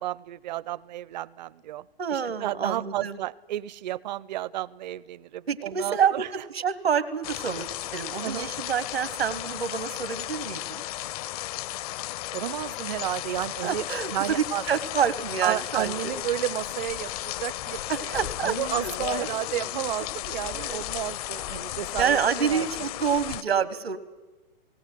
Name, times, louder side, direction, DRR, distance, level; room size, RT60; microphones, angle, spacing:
voice 1, 0.0-6.3 8.2-8.5 12.3-13.9 14.1-14.6 15.4-22.7, right 14 dB, 45° right, 22 dB, 0.6 m, -32 dB
voice 2, 2.0-3.2 5.5-7.7 7.9-10.8 13.6-16.1 17.9-18.5 20.5-20.8 22.0-24.0, right 7 dB, 85° right, 14 dB, 1.6 m, -27 dB
sound 1, 7.2-23.4, left 14 dB, 40° left, 0.6 m, -34 dB
19.0 x 19.0 x 9.3 m, 1.2 s
hypercardioid pair, 125°, 30 cm